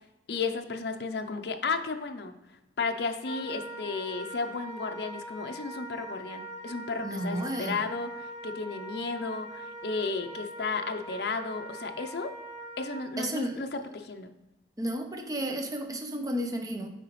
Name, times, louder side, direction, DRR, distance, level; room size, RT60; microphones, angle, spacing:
voice 1, 0.3-2.3 2.8-8.1 8.4-12.3 12.8-14.3, left 4 dB, 65° left, 6 dB, 0.5 m, -33 dB
Wind instrument woodwind instrument, 3.2-13.1, right 1 dB, 40° left, 1.5 m, -42 dB
voice 2, 7.0-7.8 13.2-13.6 14.8-16.9, right 1 dB, 20° right, 4 dB, 0.7 m, -32 dB
8.8 x 4.8 x 3.1 m, 0.96 s
head